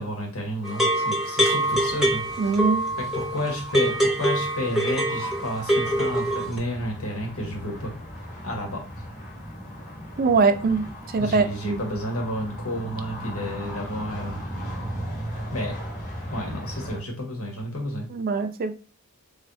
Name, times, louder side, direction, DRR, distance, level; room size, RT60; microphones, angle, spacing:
voice 1, 0.0-2.6 3.0-7.9 8.4-8.8 11.2-14.4 15.5-15.8 16.3-18.1, left 1 dB, 90° left, 1.4 m, -31 dB
sound 1, 0.6-6.6, right 1 dB, ahead, 0.7 m, -24 dB
sound 2, 1.6-17.0, equal, 35° left, 1.1 m, -37 dB
voice 2, 2.4-2.8 10.2-10.9 11.1-11.8 18.1-18.7, right 4 dB, 40° right, 0.4 m, -22 dB
3.4 x 3.3 x 2.6 m
head